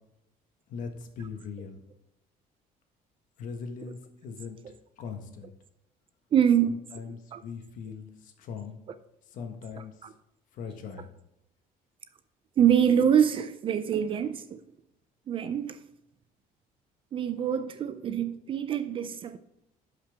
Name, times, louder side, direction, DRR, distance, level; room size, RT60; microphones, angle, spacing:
voice 1, 0.7-1.8 3.4-4.6 5.0-5.5 6.7-8.8 9.3-9.9 10.5-11.1, left 5 dB, 60° left, 1.3 m, -40 dB
voice 2, 6.3-6.8 7.1-7.4 12.6-14.6 15.3-15.8 17.1-19.4, right 8 dB, 35° right, 0.4 m, -25 dB
11.5 x 5.7 x 3.4 m
cardioid pair, 160°, 15 cm